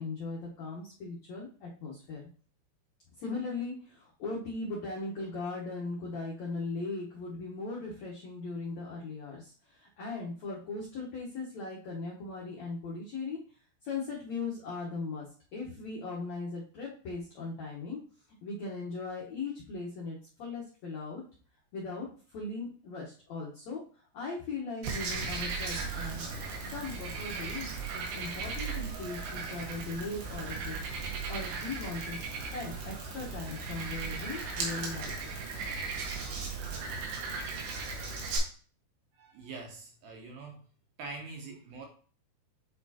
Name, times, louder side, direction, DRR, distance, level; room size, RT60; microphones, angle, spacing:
voice 1, 0.0-2.3 3.2-13.4 13.8-15.3 15.5-18.0 18.4-21.2 21.7-23.8 24.1-26.2 26.7-27.7 27.9-30.8 31.3-32.2 32.5-35.3, left 3 dB, 70° left, -5 dB, 1.6 m, -38 dB
Frog, 24.8-38.4, right 4 dB, 90° right, 3.6 m, -37 dB
voice 2, 39.1-40.6 41.0-41.9, right 3 dB, 70° right, 1 dB, 2.5 m, -44 dB
8.2 x 4.3 x 2.8 m, 0.41 s
omnidirectional pair, 4.8 m